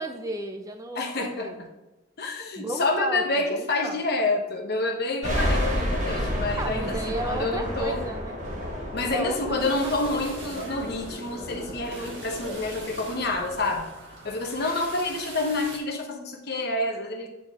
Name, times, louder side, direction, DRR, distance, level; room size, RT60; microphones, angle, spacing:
voice 1, 0.0-1.6 2.6-4.0 6.6-8.4 9.0-9.6 9.8-10.3, right 2 dB, 15° right, 5 dB, 0.5 m, -34 dB
voice 2, 0.9-1.7 2.2-8.0 8.9-13.9 14.2-17.3, left 2 dB, 50° left, 2 dB, 1.0 m, -28 dB
sound 1, 5.2-13.8, equal, 35° right, 1.5 m, -31 dB
sound 2, 9.6-15.8, right 2 dB, 55° right, 1.9 m, -42 dB
8.5 x 4.4 x 3.6 m, 1.0 s
head